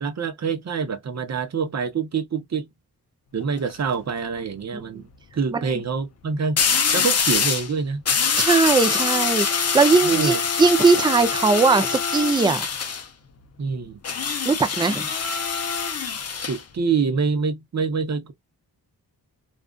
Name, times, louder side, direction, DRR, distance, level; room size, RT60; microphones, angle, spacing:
voice 1, 0.0-2.7 3.3-6.7 6.9-8.0 10.0-10.4 13.6-14.0 16.4-18.3, right 5 dB, 45° right, 0.7 m, -26 dB
sound 1, 3.4-3.7 6.6-7.7 8.0-13.0 14.0-16.6, left 6 dB, 40° left, 0.6 m, -24 dB
voice 2, 8.5-12.7 14.5-15.1, right 4 dB, 10° right, 0.4 m, -19 dB
2.5 x 2.3 x 2.2 m
wide cardioid pair, 90°, 39 cm